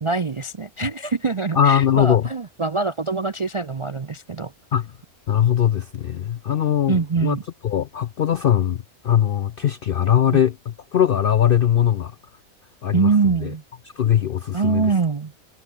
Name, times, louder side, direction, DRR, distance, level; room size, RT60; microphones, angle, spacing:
voice 1, 0.0-4.5 6.9-7.4 10.3-10.4 12.9-13.6 14.5-15.3, right 4 dB, 45° right, 0.4 m, -23 dB
voice 2, 1.6-2.3 4.7-4.9 5.3-12.1 12.8-13.1 13.4-13.5 14.0-14.9, left 10 dB, 65° left, 0.5 m, -20 dB
omnidirectional pair, 1.5 m